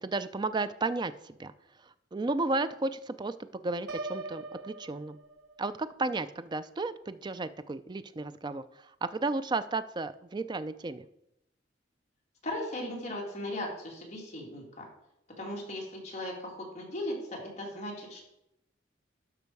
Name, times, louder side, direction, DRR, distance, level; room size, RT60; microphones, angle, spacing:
voice 1, 0.0-1.5 1.8-3.3 3.6-5.2 5.6-11.1, right 3 dB, 25° right, 13 dB, 0.4 m, -33 dB
Piano, 3.9-5.8, right 2 dB, 85° right, 0.8 m, -41 dB
voice 2, 12.4-14.9 15.3-18.2, left 1 dB, 40° left, -2 dB, 2.4 m, -37 dB
12.0 x 5.6 x 4.6 m, 0.83 s
head